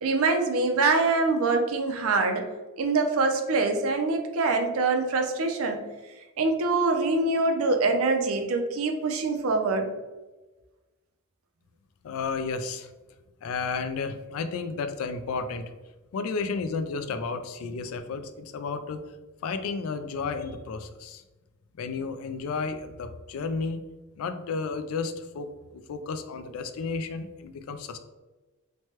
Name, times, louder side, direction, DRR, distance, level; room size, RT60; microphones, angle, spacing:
voice 1, 0.0-2.5 2.8-5.8 6.4-9.9, right 3 dB, 85° right, 5 dB, 0.5 m, -24 dB
voice 2, 12.0-12.9 13.4-15.7 16.1-19.0 19.4-21.2 21.8-23.9 24.2-28.0, left 4 dB, 80° left, 9 dB, 0.3 m, -32 dB
3.1 x 2.2 x 2.8 m, 1.2 s
head